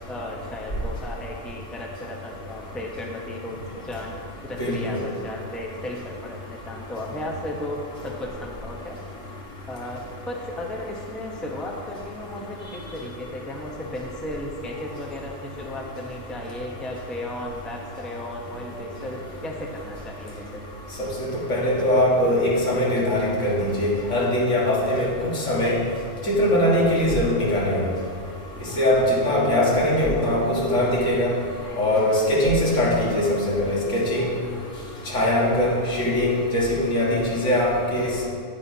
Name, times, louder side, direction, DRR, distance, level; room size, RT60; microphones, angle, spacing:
voice 1, 0.1-4.2 4.4-7.8 8.0-9.0 9.7-20.6, left 1 dB, ahead, -1 dB, 0.7 m, -35 dB
voice 2, 4.6-5.0 21.2-25.1 25.3-25.8 26.3-27.9 28.8-31.3 31.8-34.3 35.1-38.1, left 1 dB, 75° left, -5 dB, 2.0 m, -21 dB
9.8 x 9.8 x 2.8 m, 2.3 s
omnidirectional pair, 1.3 m